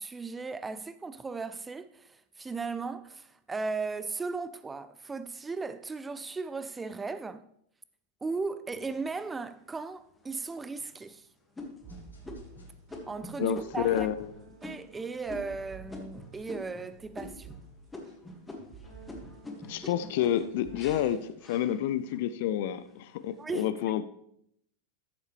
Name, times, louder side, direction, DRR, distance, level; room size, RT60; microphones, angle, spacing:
voice 1, 0.0-7.4 8.2-11.3 13.1-14.1 14.6-17.6 19.8-19.9 23.4-23.7, right 4 dB, 15° right, 0.4 m, -36 dB
sound 1, 8.7-9.6 10.2-10.3 10.8-11.1 11.6-16.9 17.1-17.6 17.9-22.2 22.7-23.2, left 2 dB, 10° left, 1.8 m, -45 dB
sound 2, 11.6-19.3 19.6-19.9 20.6-21.0, right 5 dB, 30° right, 3.5 m, -51 dB
sound 3, 11.8-21.1, right 3 dB, 80° left, 3.7 m, -57 dB
voice 2, 13.4-14.3 19.7-24.0, left 11 dB, 50° left, 0.4 m, -29 dB
13.5 x 7.2 x 3.2 m
figure-of-eight pair, 90°, 0 cm